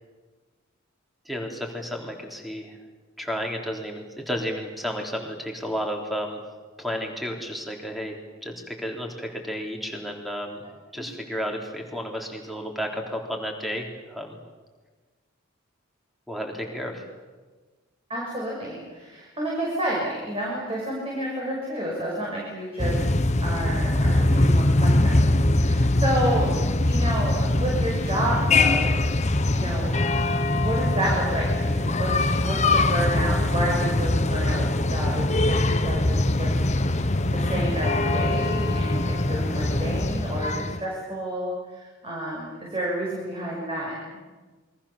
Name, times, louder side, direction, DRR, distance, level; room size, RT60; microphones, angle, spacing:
voice 1, 1.3-2.8 3.2-6.4 6.8-8.2 8.4-10.6 10.9-14.4 16.3-17.0, equal, ahead, 2 dB, 3.7 m, -32 dB
voice 2, 18.1-23.0 23.4-29.0 29.4-30.0 30.5-44.2, right 1 dB, 25° right, -4 dB, 6.5 m, -30 dB
sound 1, 22.8-40.8, left 2 dB, 35° left, 1.2 m, -22 dB
28.5 x 23.0 x 7.2 m, 1.3 s
head